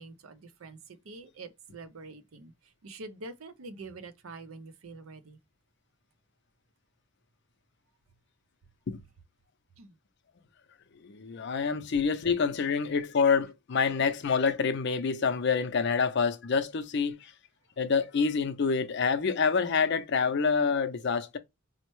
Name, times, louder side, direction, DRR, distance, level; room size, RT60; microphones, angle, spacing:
voice 1, 0.0-2.5 2.8-5.4 9.8-10.0, right 3 dB, 85° right, 0.6 m, -45 dB
voice 2, 11.0-17.3 17.8-21.4, left 5 dB, 55° left, 0.5 m, -27 dB
4.2 x 2.1 x 3.0 m
head